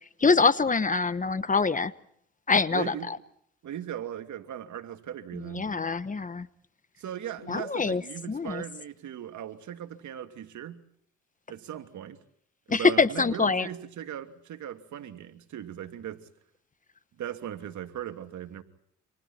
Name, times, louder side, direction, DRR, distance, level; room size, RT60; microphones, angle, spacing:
voice 1, 0.2-1.9 2.5-3.2 5.5-6.5 7.5-8.0 8.3-8.6 12.7-13.7, left 4 dB, 25° left, 1.1 m, -24 dB
voice 2, 2.7-3.1 3.6-5.7 7.0-10.8 11.5-12.2 12.7-16.2 17.2-18.6, right 10 dB, 70° right, 2.8 m, -38 dB
29.5 x 26.5 x 4.4 m
cardioid pair, 90°, 30 cm